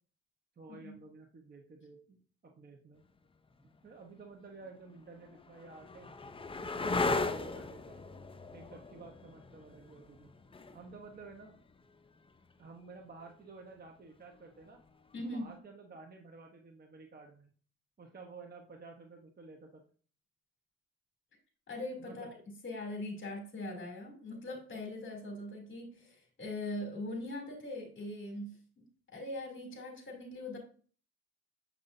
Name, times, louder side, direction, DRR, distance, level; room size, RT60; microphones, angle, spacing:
voice 1, 0.6-2.2 2.6-3.0 3.8-6.2 6.7-8.0 8.5-10.3 10.7-11.6 12.6-14.8 15.3-17.5 18.0-19.8 22.0-22.3, right 3 dB, 30° right, 2 dB, 1.0 m, -52 dB
sound 1, 3.7-3.8 4.7-12.3 14.6-15.2, left 3 dB, 20° left, 0.6 m, -38 dB
voice 2, 15.1-15.5 21.7-22.3 22.6-28.8 29.1-30.6, left 1 dB, 40° left, 1 dB, 2.9 m, -41 dB
7.7 x 5.6 x 2.7 m, 0.42 s
cardioid pair, 90°, 30 cm